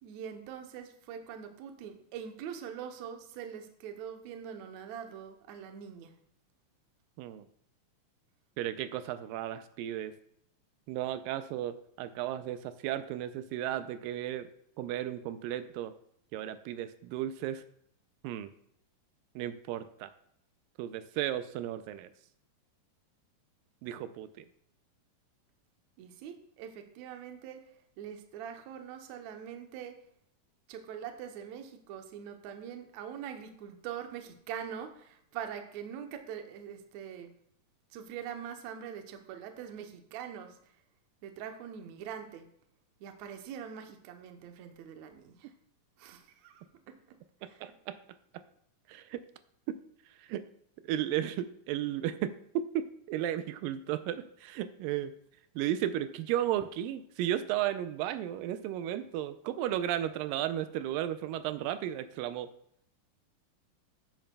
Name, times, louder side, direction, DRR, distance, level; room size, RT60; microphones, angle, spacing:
voice 1, 0.0-6.1 26.0-30.0 30.7-37.3 37.9-40.7 41.2-42.5 43.0-45.5 46.0-47.0 47.4-47.7, right 8 dB, 70° right, 6 dB, 1.9 m, -43 dB
voice 2, 8.6-10.1 10.9-14.5 14.8-15.9 16.3-17.6 18.2-18.5 19.4-20.1 20.8-22.1 23.8-24.5 47.6-48.0 48.9-49.2 49.7-49.8 50.2-50.4 50.8-55.1 55.6-62.5, right 12 dB, 90° right, 11 dB, 2.3 m, -34 dB
11.0 x 8.8 x 2.3 m, 0.69 s
omnidirectional pair, 3.9 m